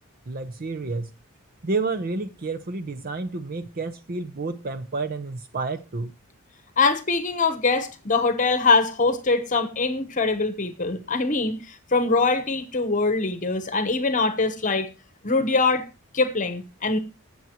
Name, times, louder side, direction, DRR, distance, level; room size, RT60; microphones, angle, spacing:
voice 1, 0.3-1.1 1.6-6.1, right 3 dB, 45° right, 0.7 m, -30 dB
voice 2, 6.8-14.9 15.2-15.8 16.1-17.0, left 3 dB, 35° left, 1.0 m, -23 dB
20.0 x 7.1 x 3.0 m
head